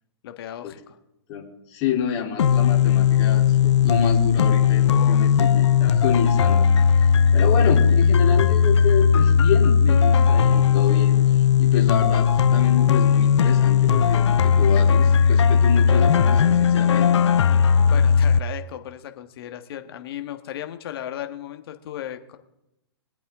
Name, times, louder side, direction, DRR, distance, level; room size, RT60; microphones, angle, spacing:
voice 1, 0.2-1.0 4.8-5.2 17.9-22.4, left 11 dB, 60° left, 7 dB, 1.5 m, -36 dB
voice 2, 1.3-6.7 7.0-17.1, left 8 dB, 35° left, -1 dB, 3.4 m, -28 dB
sound 1, 2.4-18.4, left 7 dB, 80° left, 0.6 m, -17 dB
23.5 x 8.4 x 3.7 m, 0.88 s
hypercardioid pair, 130°, 14 cm